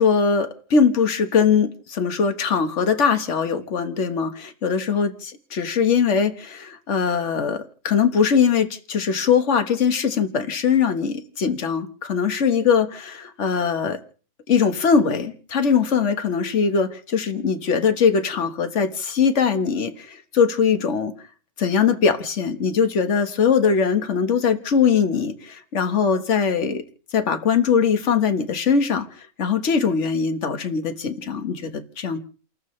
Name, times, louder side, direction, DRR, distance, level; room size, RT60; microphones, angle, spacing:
voice 1, 0.0-14.0 14.5-21.1 21.6-26.8 27.1-29.1 29.4-32.2, left 6 dB, 55° left, 9 dB, 1.6 m, -21 dB
30.0 x 13.5 x 3.2 m, 0.40 s
omnidirectional pair, 1.5 m